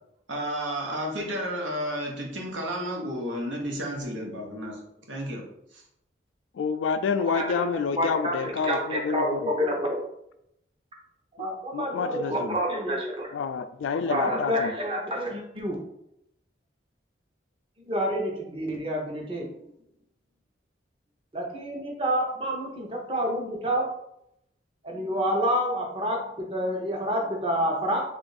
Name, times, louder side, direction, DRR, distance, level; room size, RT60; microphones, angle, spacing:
voice 1, 0.3-4.8 5.1-5.4 5.7-5.8, equal, 80° right, 0 dB, 0.9 m, -32 dB
voice 2, 6.5-9.5 11.7-12.6 13.3-14.7, left 5 dB, 85° left, 11 dB, 0.3 m, -28 dB
voice 3, 7.2-10.0 11.4-13.3 14.1-15.8 17.8-19.5 21.3-23.9 24.8-28.0, equal, 30° right, 0 dB, 0.7 m, -28 dB
3.4 x 2.5 x 3.9 m, 0.79 s
head